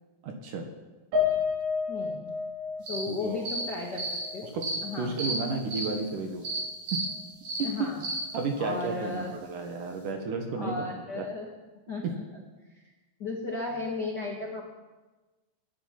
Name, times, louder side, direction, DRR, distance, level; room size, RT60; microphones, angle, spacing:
voice 1, 0.2-0.7 3.1-3.5 4.5-4.7 5.0-6.5 6.9-7.0 8.3-11.2 12.0-12.1, right 4 dB, 60° right, 4 dB, 2.5 m, -32 dB
Piano, 1.1-5.6 6.0-6.1 6.5-6.7, left 6 dB, 85° right, 6.0 m, -32 dB
voice 2, 1.9-2.3 2.9-4.5 4.8-5.2 7.6-8.1 8.6-9.4 10.6-11.5 11.9-12.4 13.2-14.6, left 3 dB, 65° left, -1 dB, 1.0 m, -35 dB
sound 1, 2.8-3.0 3.5-3.6 3.9-4.2 4.6-4.7 5.2-5.3 5.7-5.9 6.4-6.6 6.9-7.0 7.4-7.6 8.0-8.2, right 2 dB, 40° right, 6.9 m, -32 dB
20.5 x 10.5 x 5.9 m, 1.2 s
omnidirectional pair, 4.9 m